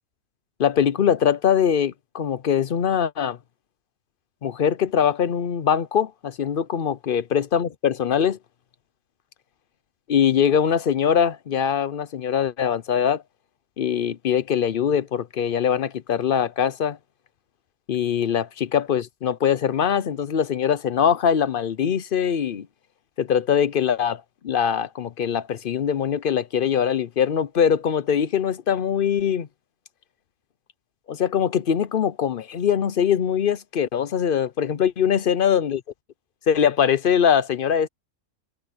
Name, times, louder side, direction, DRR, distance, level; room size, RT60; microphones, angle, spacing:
voice 1, 0.6-3.4 4.4-8.4 10.1-13.2 13.8-17.0 17.9-22.7 23.2-29.5 31.1-35.8 36.5-37.9, left 8 dB, 55° left, 0.6 m, -22 dB
omnidirectional pair, 1.6 m